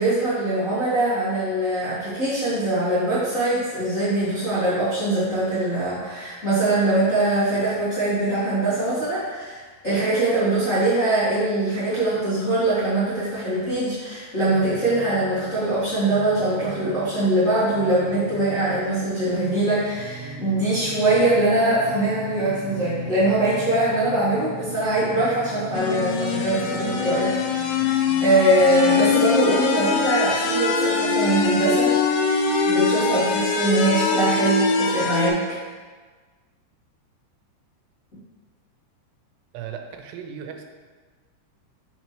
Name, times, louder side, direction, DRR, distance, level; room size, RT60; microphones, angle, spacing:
voice 1, 0.0-31.9 32.6-35.4, right 2 dB, 65° left, -14 dB, 0.7 m, -22 dB
sound 1, 14.4-29.2, right 2 dB, 60° right, 2.0 m, -39 dB
sound 2, 25.7-35.3, left 4 dB, 90° left, 2.8 m, -22 dB
voice 2, 39.5-40.6, right 8 dB, 90° right, 4 dB, 2.8 m, -36 dB
6.0 x 5.3 x 3.1 m, 1.4 s
omnidirectional pair, 4.8 m